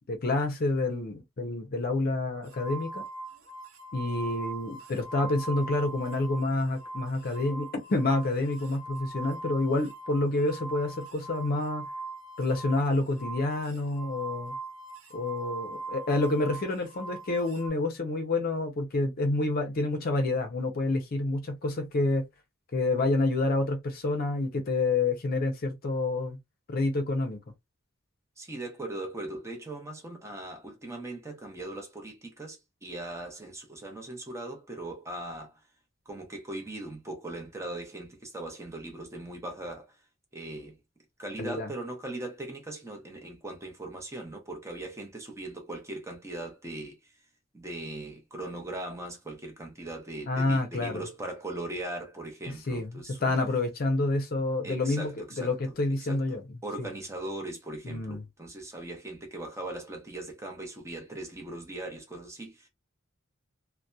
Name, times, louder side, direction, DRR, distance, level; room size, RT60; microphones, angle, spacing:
voice 1, 0.1-3.0 3.9-11.9 12.4-14.5 15.1-22.2 22.7-26.4 26.7-27.4 41.4-41.7 50.3-51.0 52.7-52.9 53.2-55.1 55.4-56.4 56.8-56.9 57.8-58.2, left 2 dB, 45° left, 0.5 m, -28 dB
sound 1, 2.5-6.5 6.8-17.7, right 3 dB, 75° right, 0.7 m, -41 dB
voice 2, 28.4-35.6 36.1-40.0 40.3-40.8 41.2-47.1 47.5-53.4 54.6-55.5 56.1-62.7, right 2 dB, 15° right, 0.6 m, -39 dB
2.7 x 2.1 x 2.2 m
head